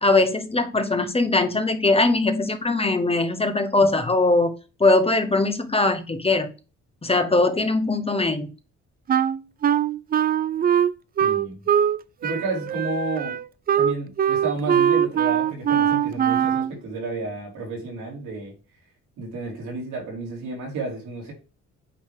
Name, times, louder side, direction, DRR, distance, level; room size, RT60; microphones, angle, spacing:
voice 1, 0.0-4.5 4.8-6.5 7.0-8.5, left 2 dB, 20° left, 1.0 m, -21 dB
Wind instrument woodwind instrument, 9.1-12.0 12.2-16.7, right 9 dB, 30° right, 0.4 m, -21 dB
voice 2, 11.2-11.6 12.2-13.4 13.8-18.5 19.2-21.3, right 3 dB, 85° right, 3.5 m, -31 dB
8.8 x 3.3 x 4.8 m
cardioid pair, 90°, 30 cm